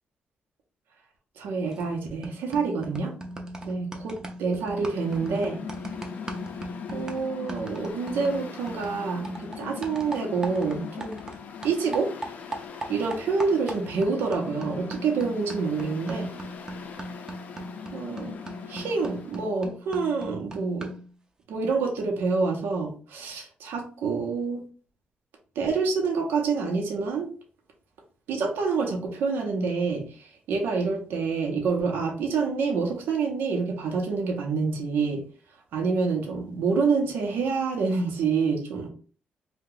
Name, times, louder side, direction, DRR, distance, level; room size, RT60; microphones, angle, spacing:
voice 1, 1.4-3.1 3.6-5.6 6.9-11.1 11.6-12.1 12.9-16.3 17.9-18.4 18.7-20.9 21.5-24.6 25.6-27.3 28.3-35.2 35.7-38.9, right 4 dB, 85° right, 1 dB, 0.7 m, -27 dB
sound 1, 1.7-2.0 2.2-11.4 11.6-21.1, right 1 dB, 20° right, 0.5 m, -39 dB
Mechanical fan, 4.6-19.5, left 7 dB, 50° left, 0.4 m, -41 dB
2.7 x 2.2 x 3.8 m, 0.39 s
cardioid pair, 160°, 3 cm